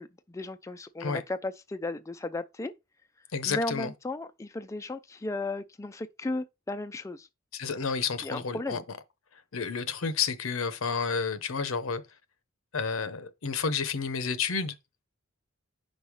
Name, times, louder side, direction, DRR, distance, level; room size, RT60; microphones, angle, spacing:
voice 1, 0.0-2.7 3.5-7.3 8.2-8.8, left 2 dB, 15° left, 0.3 m, -35 dB
voice 2, 3.3-3.9 7.5-8.8 9.5-12.0 12.7-14.7, left 5 dB, 80° left, 0.8 m, -30 dB
5.4 x 3.8 x 4.8 m
head